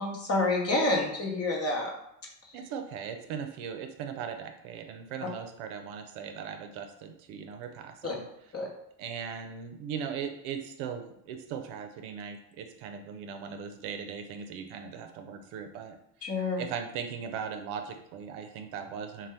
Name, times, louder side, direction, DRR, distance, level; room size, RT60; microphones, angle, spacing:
voice 1, 0.0-1.9 8.0-8.2 8.5-8.7 16.2-16.6, left 2 dB, 30° left, 0 dB, 0.8 m, -28 dB
voice 2, 2.5-8.3 9.0-16.0 16.6-19.3, right 7 dB, 75° right, 6 dB, 0.6 m, -39 dB
2.7 x 2.2 x 3.3 m, 0.75 s
supercardioid pair, 75°, 49 cm